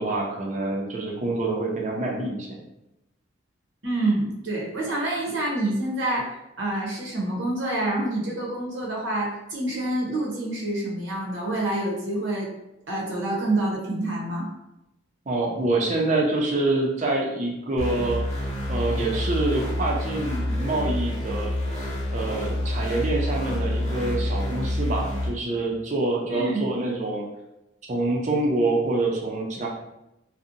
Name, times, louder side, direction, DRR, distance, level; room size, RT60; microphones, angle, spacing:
voice 1, 0.0-2.6 15.3-18.2 18.7-21.5 22.1-27.3 27.9-29.7, right 2 dB, 35° right, -1 dB, 0.4 m, -26 dB
voice 2, 3.8-6.3 6.6-12.5 12.9-14.5 26.3-26.6, right 1 dB, 70° right, -3 dB, 0.7 m, -27 dB
sound 1, 17.8-25.3, left 1 dB, 35° left, 0.6 m, -28 dB
2.6 x 2.0 x 2.5 m, 0.90 s
head